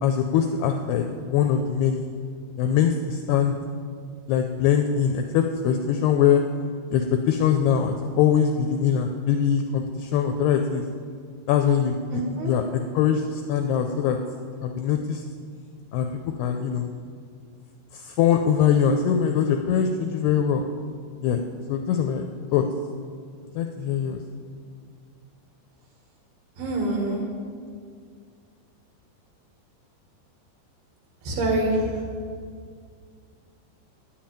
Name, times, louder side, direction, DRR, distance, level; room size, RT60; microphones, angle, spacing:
voice 1, 0.0-2.1 2.6-3.6 4.3-6.4 6.9-10.8 11.5-14.2 14.6-15.2 15.9-16.9 17.9-20.6 21.2-21.4 21.7-22.2 22.5-22.6 23.6-24.2, left 8 dB, 85° left, 5 dB, 2.3 m, -22 dB
voice 2, 12.1-12.5 26.6-27.3 31.2-32.0, right 1 dB, 65° right, -1 dB, 3.1 m, -26 dB
10.0 x 7.6 x 8.8 m, 2.1 s
omnidirectional pair, 5.2 m